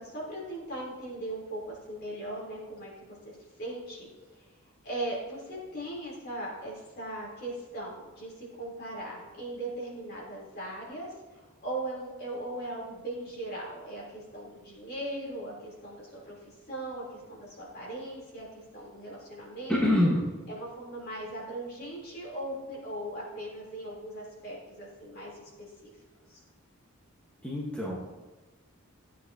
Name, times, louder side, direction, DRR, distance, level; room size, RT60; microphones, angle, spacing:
voice 1, 0.0-4.5 4.8-16.3 16.7-19.8 20.5-25.9 26.3-26.4, right 1 dB, 45° left, -4 dB, 3.4 m, -39 dB
voice 2, 19.7-20.2 27.4-28.0, left 1 dB, 5° left, -5 dB, 1.2 m, -25 dB
14.5 x 8.3 x 2.8 m, 1.2 s
head